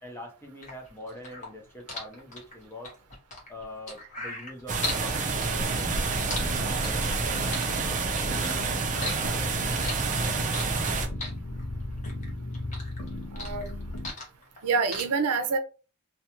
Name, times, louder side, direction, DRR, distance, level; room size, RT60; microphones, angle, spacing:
voice 1, 0.0-2.9 3.5-7.7 8.3-9.8, left 1 dB, 10° left, 2 dB, 0.6 m, -44 dB
sound 1, 0.6-5.1 5.4-7.2 7.5-8.6 8.9-10.9 11.2-12.3 12.5-14.6 14.9-15.0, left 2 dB, 35° left, 0.9 m, -37 dB
sound 2, 4.7-11.1, right 4 dB, 35° right, 0.5 m, -28 dB
sound 3, 5.7-14.1, left 1 dB, 80° left, 0.6 m, -36 dB
voice 2, 13.3-13.7 14.6-15.6, right 4 dB, 85° right, 7 dB, 0.5 m, -26 dB
2.4 x 2.2 x 2.8 m, 0.33 s
head